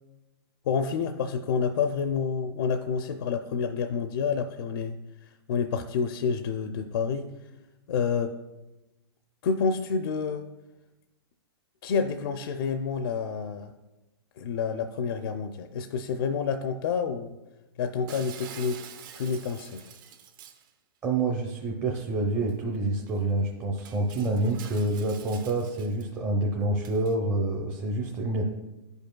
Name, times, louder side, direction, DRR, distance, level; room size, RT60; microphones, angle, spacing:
voice 1, 0.7-7.3 7.9-8.3 9.4-10.5 11.8-13.7 14.4-17.4 17.8-18.8 19.1-19.9, left 5 dB, 65° left, 7 dB, 0.5 m, -29 dB
Shatter, 18.1-20.7 22.5-22.6 23.1-23.2 23.8-26.0 26.8-27.2, right 8 dB, 50° right, 0.8 m, -47 dB
voice 2, 21.0-28.5, right 2 dB, 20° right, -1 dB, 0.6 m, -27 dB
11.0 x 5.3 x 2.2 m, 1.0 s
hypercardioid pair, 155°, 13 cm